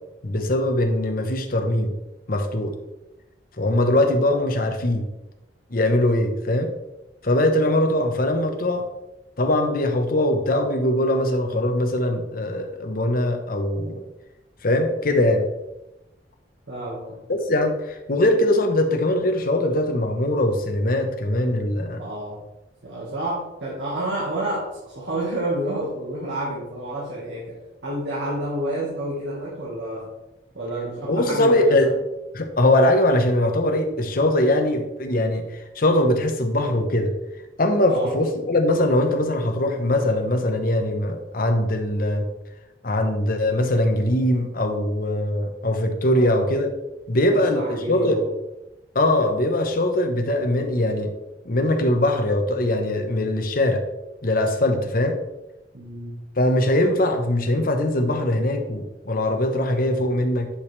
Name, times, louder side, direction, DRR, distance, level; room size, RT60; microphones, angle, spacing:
voice 1, 0.2-1.9 2.3-2.7 3.6-5.1 5.7-6.7 7.2-8.8 9.4-14.0 14.6-15.5 17.3-22.1 31.0-31.9 32.3-35.4 35.7-37.1 37.6-42.2 42.8-46.7 47.1-48.2 48.9-51.1 51.4-53.8 54.2-55.2 56.4-60.5, left 1 dB, 55° left, 5 dB, 1.0 m, -21 dB
voice 2, 16.7-17.2 22.0-22.4 22.8-30.1 30.5-31.9 37.9-38.2 46.1-46.3 47.3-48.3 55.7-56.2, right 1 dB, 85° right, -5 dB, 1.7 m, -29 dB
10.0 x 5.1 x 3.3 m, 0.95 s
head